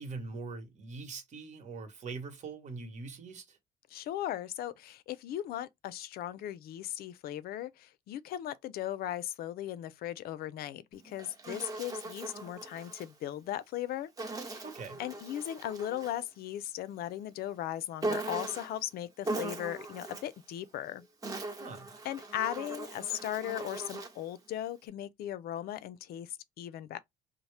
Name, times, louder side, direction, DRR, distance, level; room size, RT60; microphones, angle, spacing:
voice 1, 0.0-3.6 14.6-15.0 21.6-21.9, right 4 dB, 45° right, 1.1 m, -42 dB
voice 2, 3.9-14.1 14.4-14.6 15.0-21.1 22.0-27.0, left 12 dB, 65° left, 0.4 m, -38 dB
Insect, 10.9-13.1 14.2-16.3 18.0-18.8 19.2-20.4 21.0-24.3, right 2 dB, 20° right, 0.9 m, -39 dB
2.7 x 2.0 x 3.2 m
cardioid pair, 110°, 17 cm